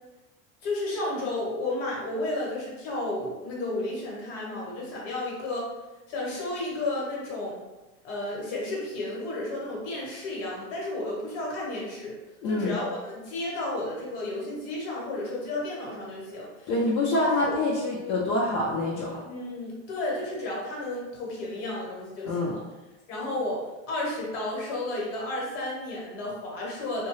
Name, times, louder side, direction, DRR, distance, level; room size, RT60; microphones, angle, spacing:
voice 1, 0.6-5.7 6.1-7.6 8.0-12.1 12.5-16.7 17.2-17.5 19.2-22.6 23.1-27.1, left 2 dB, 55° left, -3 dB, 1.1 m, -32 dB
voice 2, 12.4-12.7 16.7-19.2 22.2-22.6, left 2 dB, 75° left, -5 dB, 0.7 m, -26 dB
2.7 x 2.2 x 3.1 m, 1.1 s
cardioid pair, 170°, 39 cm